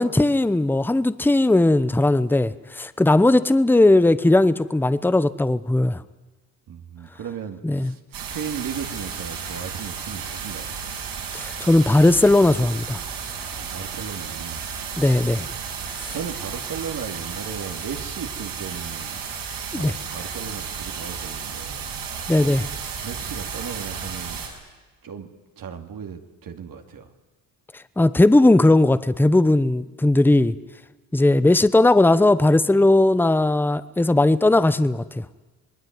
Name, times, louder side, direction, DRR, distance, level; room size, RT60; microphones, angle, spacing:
voice 1, 0.0-6.0 7.6-7.9 11.3-13.0 15.0-15.5 16.0-16.1 19.7-19.9 22.3-22.7 28.0-30.5 31.1-35.2, left 2 dB, 5° left, 0.9 m, -18 dB
voice 2, 6.7-10.7 13.5-14.7 16.1-19.3 19.7-22.0 23.0-24.4 25.0-25.3 25.6-27.1, right 7 dB, 55° right, 2.5 m, -36 dB
sound 1, 8.1-24.5, right 6 dB, 75° right, 7.2 m, -33 dB
26.0 x 20.0 x 9.4 m
supercardioid pair, 80°, 41 cm